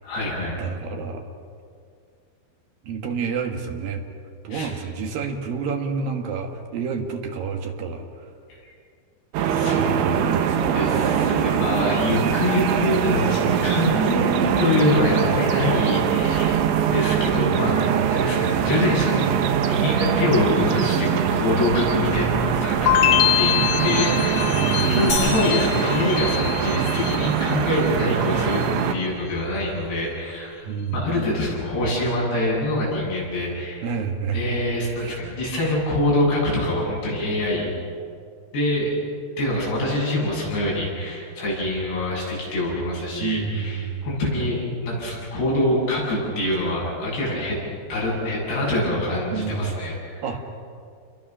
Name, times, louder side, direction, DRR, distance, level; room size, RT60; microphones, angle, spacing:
voice 1, 0.0-0.6 4.5-4.7 8.6-8.7 9.4-9.9 10.7-19.2 19.7-28.6 28.9-30.6 30.9-33.9 34.3-37.7 38.5-38.9 39.4-47.6 47.9-50.3, left 1 dB, 65° left, -5 dB, 10.0 m, -25 dB
voice 2, 0.6-1.2 2.8-4.0 4.4-8.0 9.7-10.9 18.0-18.1 24.5-24.9 30.6-31.3 33.8-34.5 35.0-35.2 43.2-44.1 49.3-49.8 50.2-50.4, right 5 dB, 60° right, 3 dB, 3.0 m, -29 dB
sound 1, 9.3-28.9, right 8 dB, 80° right, 3.5 m, -22 dB
sound 2, 22.9-27.9 28.2-28.8, left 13 dB, 90° left, 1.8 m, -24 dB
sound 3, 25.1-27.0, left 3 dB, 25° left, 5.7 m, -31 dB
28.5 x 23.0 x 6.3 m, 2.3 s
omnidirectional pair, 5.2 m